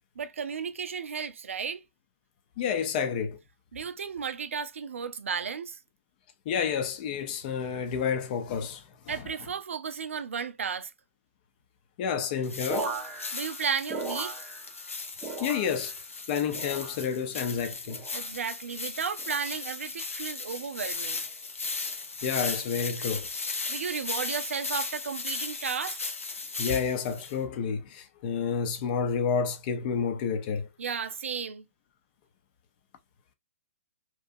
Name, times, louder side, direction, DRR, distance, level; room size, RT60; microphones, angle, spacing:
voice 1, 0.2-1.8 3.7-5.8 9.1-10.9 13.3-14.5 18.1-21.2 23.7-26.1 30.8-31.7, right 6 dB, 70° right, 0.4 m, -34 dB
voice 2, 2.6-3.4 6.5-9.3 12.0-12.9 15.4-15.9 16.3-18.0 22.2-23.3 26.6-30.7, left 6 dB, 40° left, 0.6 m, -30 dB
sound 1, 12.4-27.3, left 3 dB, 85° left, 0.6 m, -36 dB
sound 2, 12.7-14.9 15.2-16.0 16.5-17.2 17.9-18.3 19.2-19.6 20.5-20.8, right 3 dB, 15° right, 0.5 m, -38 dB
2.8 x 2.3 x 2.5 m
figure-of-eight pair, 125°, 7 cm